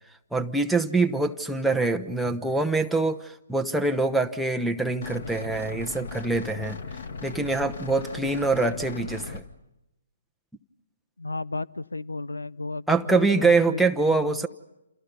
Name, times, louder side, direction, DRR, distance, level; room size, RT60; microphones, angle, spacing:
voice 1, 0.3-6.8 7.2-9.4 12.9-14.5, right 3 dB, ahead, 3 dB, 1.0 m, -24 dB
sound 1, 5.0-9.4, left 4 dB, 60° left, 2.1 m, -37 dB
voice 2, 11.2-14.4, left 3 dB, 85° left, 19 dB, 0.8 m, -34 dB
29.0 x 28.5 x 5.5 m, 0.90 s
figure-of-eight pair, 135°, 0 cm